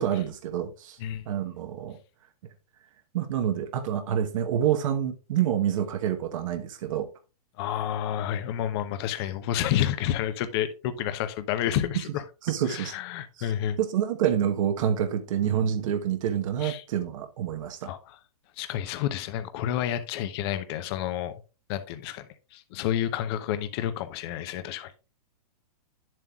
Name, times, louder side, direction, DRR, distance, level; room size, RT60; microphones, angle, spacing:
voice 1, 0.0-1.0 1.3-2.0 3.1-7.1 12.4-13.0 13.4-13.5 13.8-17.9, right 9 dB, 55° right, 1.1 m, -27 dB
voice 2, 7.6-12.2 12.7-13.8 16.6-16.8 17.8-18.2 18.6-21.4 21.7-25.1, left 11 dB, 40° left, 0.8 m, -30 dB
10.0 x 7.6 x 2.4 m
hypercardioid pair, 145°, 20 cm